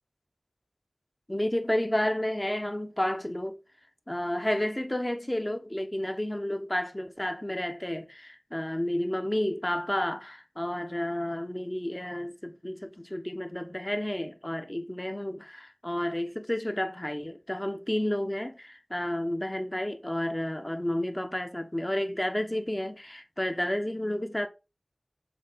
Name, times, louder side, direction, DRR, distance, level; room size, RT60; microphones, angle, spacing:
voice 1, 1.3-3.6 4.1-24.5, left 1 dB, 20° left, 1.1 m, -31 dB
7.3 x 3.5 x 5.7 m
wide cardioid pair, 55°, 0 cm